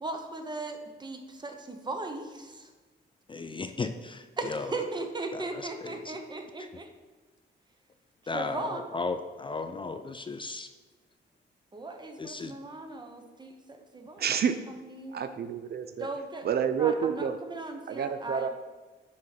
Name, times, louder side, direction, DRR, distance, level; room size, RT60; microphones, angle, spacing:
voice 1, 0.0-2.7 4.4-6.9 8.2-8.9 11.7-14.2 14.8-15.2 16.0-16.5 16.8-18.5, right 2 dB, 20° right, 4 dB, 0.9 m, -38 dB
voice 2, 3.3-4.7 5.3-6.2 8.3-10.7 12.2-12.5, left 3 dB, 25° left, 8 dB, 0.4 m, -35 dB
voice 3, 14.2-14.6 15.1-16.1 16.4-17.4 17.9-18.5, right 7 dB, 55° right, 9 dB, 0.4 m, -28 dB
9.8 x 4.2 x 4.0 m, 1.4 s
cardioid pair, 120°, 20 cm